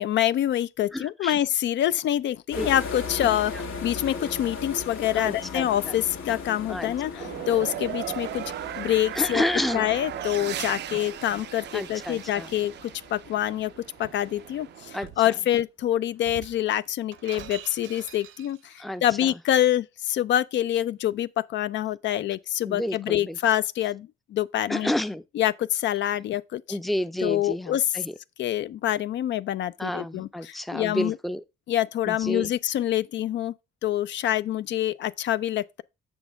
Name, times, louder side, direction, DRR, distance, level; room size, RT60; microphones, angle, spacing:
voice 1, 0.0-8.4 8.8-9.4 9.7-13.7 14.0-24.9 25.3-26.8 27.2-27.9 28.4-31.2 31.7-33.5 33.8-35.8, left 12 dB, 65° left, 0.4 m, -26 dB
voice 2, 0.9-1.4 2.6-2.7 5.1-5.9 6.7-6.9 7.2-7.3 9.1-9.9 11.7-12.5 14.9-15.1 18.8-19.3 22.6-23.4 24.7-25.2 26.7-28.1 29.8-31.4 32.1-32.5, left 1 dB, ahead, 0.5 m, -30 dB
sound 1, 2.5-14.6, left 4 dB, 85° left, 1.8 m, -39 dB
sound 2, 7.2-15.0, right 12 dB, 60° right, 0.4 m, -37 dB
Shatter, 13.4-14.3 15.0-15.3 16.2-18.8, right 10 dB, 85° right, 0.8 m, -45 dB
7.0 x 6.3 x 3.5 m
cardioid pair, 90°, 20 cm